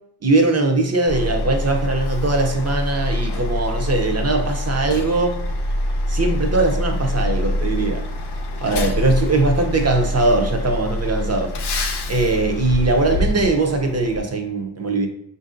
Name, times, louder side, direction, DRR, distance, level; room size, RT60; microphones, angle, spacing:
voice 1, 0.2-5.4 6.1-8.0 8.6-11.5 12.1-15.1, right 2 dB, 40° right, 4 dB, 0.7 m, -20 dB
Truck, 1.1-14.2, left 1 dB, 75° left, 0.6 m, -25 dB
5.6 x 2.6 x 2.5 m, 0.71 s
wide cardioid pair, 110°, 40 cm